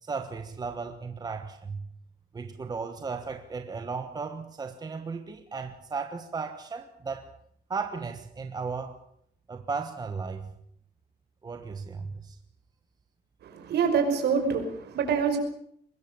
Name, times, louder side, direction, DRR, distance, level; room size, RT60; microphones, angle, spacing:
voice 1, 0.0-1.9 2.3-7.3 7.7-9.0 9.5-10.5 11.4-12.4, right 4 dB, 20° right, 8 dB, 1.3 m, -35 dB
voice 2, 13.4-15.4, right 6 dB, 65° right, 5 dB, 5.4 m, -26 dB
23.0 x 21.0 x 6.9 m, 0.69 s
cardioid pair, 175°, 18 cm